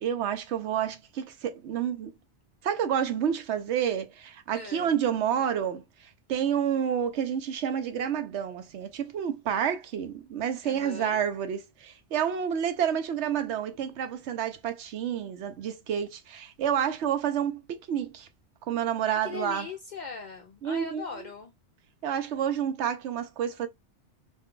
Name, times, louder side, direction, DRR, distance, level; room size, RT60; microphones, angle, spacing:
voice 1, 0.0-2.1 2.6-18.3 18.7-19.7 20.6-21.0 22.0-23.7, right 8 dB, 75° right, 0.9 m, -29 dB
voice 2, 4.5-4.9 10.6-11.2 19.1-21.5, left 5 dB, 55° left, 0.5 m, -40 dB
2.6 x 2.2 x 3.6 m
omnidirectional pair, 1.2 m